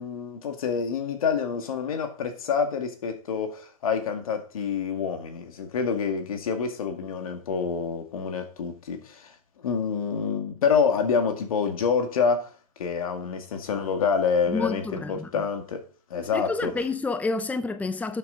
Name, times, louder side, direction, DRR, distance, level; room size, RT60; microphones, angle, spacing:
voice 1, 0.0-9.3 9.6-12.5 12.8-15.8 16.1-16.7, left 6 dB, 80° left, 2.2 m, -27 dB
voice 2, 14.5-15.3 16.3-18.2, left 3 dB, 10° left, 0.7 m, -29 dB
12.0 x 6.7 x 4.0 m
hypercardioid pair, 110°, 18 cm